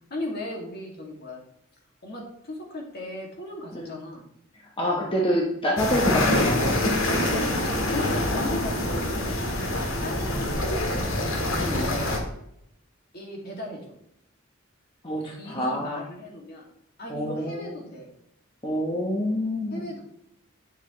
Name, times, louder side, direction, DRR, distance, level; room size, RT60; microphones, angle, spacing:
voice 1, 0.1-1.4 2.0-4.2 7.1-9.7 10.0-11.3 11.8-12.2 13.1-13.9 15.3-16.7 17.0-18.1 19.7-20.0, left 1 dB, 50° left, -1 dB, 2.4 m, -37 dB
voice 2, 4.8-6.6 11.6-11.9 15.0-16.0 17.1-17.7 18.6-19.8, equal, 25° left, -2 dB, 1.2 m, -27 dB
sound 1, 5.8-12.2, left 1 dB, 70° left, 1.9 m, -25 dB
10.0 x 6.6 x 3.2 m, 0.77 s
head